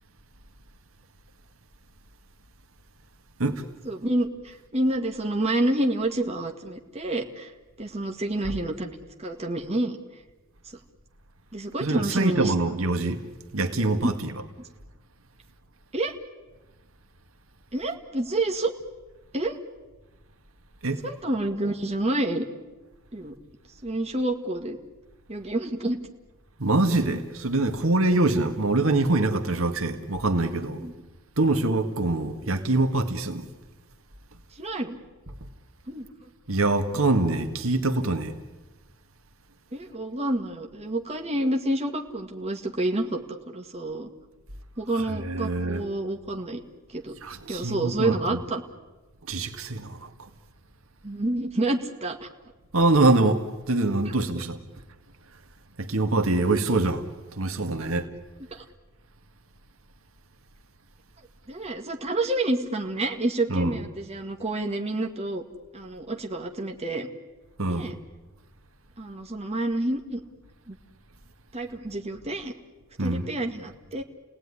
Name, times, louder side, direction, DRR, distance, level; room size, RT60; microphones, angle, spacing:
voice 1, 3.8-7.5 7.8-8.9 9.2-10.0 11.5-12.5 14.0-14.1 14.6-14.7 15.9-16.1 17.7-18.7 19.3-19.6 21.0-22.5 23.1-23.3 23.8-24.8 25.3-26.0 30.8-30.9 34.6-35.0 35.9-36.3 39.7-43.2 43.5-44.1 44.8-46.6 46.9-47.1 47.5-48.6 51.0-52.3 54.1-54.2 57.8-57.9 58.5-58.6 61.5-65.4 65.7-67.1 67.7-67.9 69.0-70.2 70.7-70.8 71.5-72.5 73.0-74.0, right 1 dB, 30° right, 2.1 m, -28 dB
voice 2, 11.8-13.2 13.5-14.3 20.8-21.0 26.6-30.8 31.4-33.5 36.5-38.3 45.0-45.8 47.2-48.4 49.3-50.1 52.7-54.6 55.8-57.1 57.3-58.1 63.5-63.8 67.6-67.9 73.0-73.3, right 2 dB, 75° right, 1.9 m, -24 dB
30.0 x 18.5 x 9.9 m
head